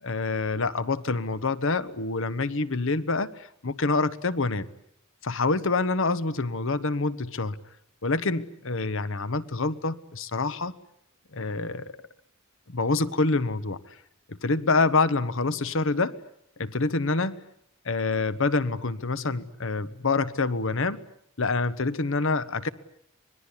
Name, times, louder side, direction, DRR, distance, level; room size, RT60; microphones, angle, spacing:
voice 1, 0.0-4.7 5.2-7.6 8.0-10.7 11.3-11.9 12.7-13.8 14.3-16.2 16.6-17.4 17.8-21.0 21.4-22.7, left 3 dB, 65° left, 15 dB, 1.2 m, -26 dB
25.5 x 20.5 x 9.9 m, 0.74 s
head